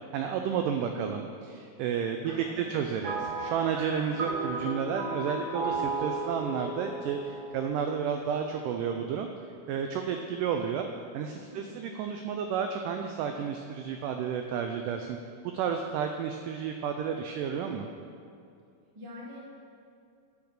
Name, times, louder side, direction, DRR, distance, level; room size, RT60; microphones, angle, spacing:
voice 1, 0.0-9.3 9.7-10.9 11.1-15.2 15.5-17.9, right 7 dB, 80° right, 4 dB, 1.9 m, -31 dB
voice 2, 0.6-1.1 2.2-3.1 4.0-4.3 11.5-11.9 18.9-19.4, left 2 dB, 35° right, -5 dB, 0.4 m, -46 dB
sound 1, 3.0-8.5, right 2 dB, 60° right, 1.8 m, -35 dB
10.5 x 5.4 x 6.6 m, 2.4 s
omnidirectional pair, 4.2 m